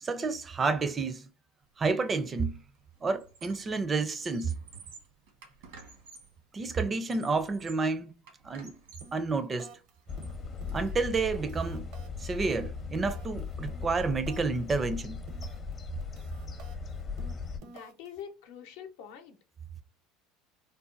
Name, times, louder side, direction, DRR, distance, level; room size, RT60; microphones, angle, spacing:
voice 1, 0.0-1.3 1.8-2.6 3.0-4.5 6.5-8.1 8.4-8.8 9.1-9.7 10.7-11.9 12.2-15.2, right 4 dB, 25° right, 0.4 m, -30 dB
Squeak, 2.0-2.3 2.6-3.8 4.1-6.4 6.9-7.9 8.3-9.2 9.7-11.3, right 4 dB, 85° right, 1.3 m, -52 dB
sound 1, 9.0-9.3 9.6-9.9 10.2-11.1 11.3-14.6 14.8-15.7 16.0-18.2, right 5 dB, 65° right, 0.6 m, -51 dB
sound 2, 10.1-17.6, left 5 dB, 35° left, 0.6 m, -38 dB
voice 2, 17.6-19.4, left 8 dB, 80° left, 0.7 m, -45 dB
3.9 x 2.1 x 2.4 m
supercardioid pair, 105°, 0 cm